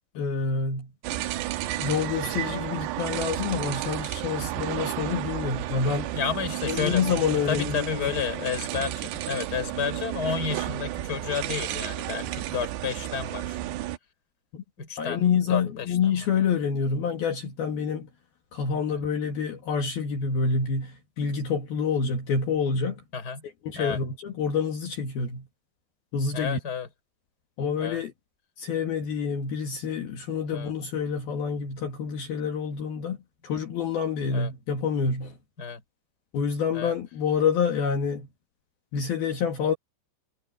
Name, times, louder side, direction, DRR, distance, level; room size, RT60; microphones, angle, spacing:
voice 1, 0.2-0.9 1.8-6.1 6.6-8.2 14.5-14.6 15.0-18.1 18.5-23.0 23.6-25.5 26.1-26.6 27.6-28.1 28.6-33.2 33.4-35.4 36.3-38.3 38.9-39.7, left 6 dB, 60° left, 3.6 m, -27 dB
sound 1, 1.0-14.0, right 14 dB, 75° right, 2.8 m, -32 dB
voice 2, 6.1-13.6 14.8-15.2 15.5-16.0 18.9-19.0 23.1-23.4 23.7-24.0 26.3-26.9 27.8-28.0 30.5-30.7 34.3-34.5 35.6-35.8 36.7-36.9, left 6 dB, 25° left, 3.7 m, -31 dB
omnidirectional pair, 5.3 m